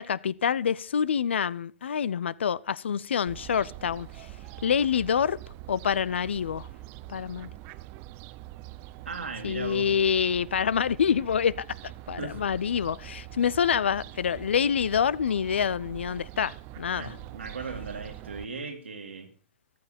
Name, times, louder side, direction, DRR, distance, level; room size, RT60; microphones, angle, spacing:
voice 1, 0.0-4.3 4.6-5.4 5.7-6.7 7.1-7.5 9.4-17.1, left 7 dB, 75° left, 0.6 m, -27 dB
Fowl, 3.3-18.5, right 16 dB, 40° right, 0.6 m, -44 dB
voice 2, 9.1-9.9 12.2-12.4 17.0-19.3, right 4 dB, 85° right, 2.5 m, -37 dB
14.5 x 13.0 x 4.3 m
hypercardioid pair, 115°, 6 cm